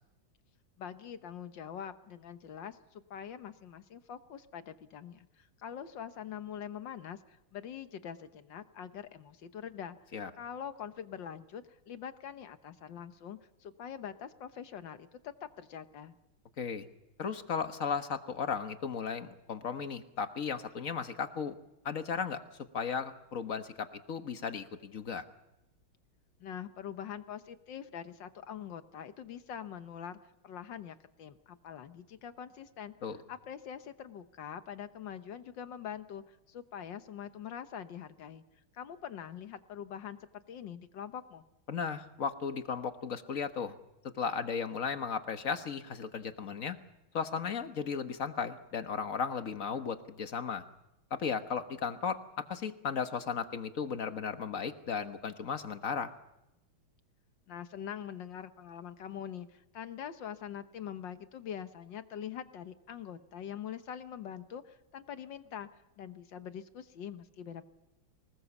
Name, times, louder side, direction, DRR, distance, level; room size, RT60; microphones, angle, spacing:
voice 1, 0.8-10.0 10.4-16.2 26.4-32.9 33.3-38.4 38.7-41.4 57.5-65.7 66.0-67.7, left 8 dB, 65° left, 10 dB, 1.7 m, -44 dB
voice 2, 17.2-21.5 21.8-22.4 22.7-25.2 33.0-33.2 41.7-43.7 44.1-46.8 47.1-50.6 51.1-56.1, left 6 dB, 45° left, 8 dB, 1.5 m, -35 dB
25.0 x 19.5 x 7.1 m, 0.93 s
omnidirectional pair, 2.2 m